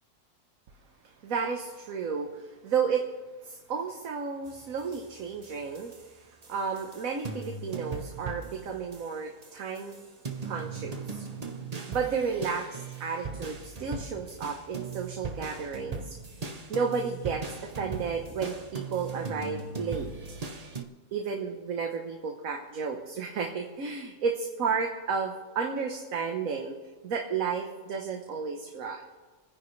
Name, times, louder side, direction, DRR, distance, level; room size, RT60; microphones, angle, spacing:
voice 1, 1.0-3.1 3.4-10.0 10.4-11.2 11.9-16.2 16.7-20.1 21.1-25.3 25.5-26.7 27.0-29.1, right 5 dB, 60° right, 2 dB, 1.4 m, -32 dB
sound 1, 4.4-6.2 6.4-9.1 9.4-20.8, right 4 dB, 30° right, 0.8 m, -39 dB
28.0 x 10.0 x 3.2 m, 1.3 s
omnidirectional pair, 1.7 m